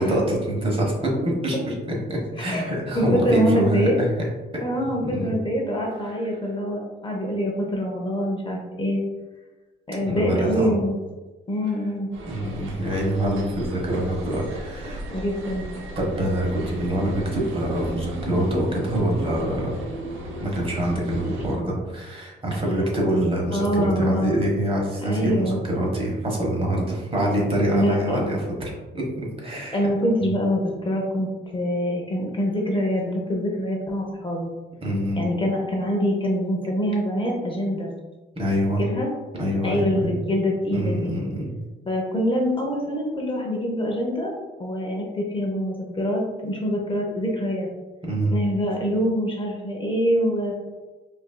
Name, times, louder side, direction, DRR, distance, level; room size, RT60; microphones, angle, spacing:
voice 1, 0.0-1.7 2.1-4.1 5.0-5.3 10.1-10.7 12.2-15.0 16.0-19.7 20.4-29.9 30.2-30.3 34.8-35.2 38.4-38.8 39.3-40.1 40.7-41.5 48.0-48.4, right 1 dB, 30° right, -2 dB, 1.2 m, -25 dB
voice 2, 2.4-2.7 2.9-4.0 4.6-9.0 9.9-11.0 11.5-12.1 14.8-15.7 23.5-24.4 25.0-25.6 27.7-28.3 29.7-34.5 35.2-37.9 38.8-39.1 39.6-41.1 41.9-44.3 44.6-47.7 48.3-50.5, equal, 25° left, -1 dB, 0.7 m, -25 dB
sound 1, 12.1-21.6, right 1 dB, 85° right, 0.7 m, -35 dB
5.0 x 2.6 x 2.2 m, 1.2 s
cardioid pair, 90°, 20 cm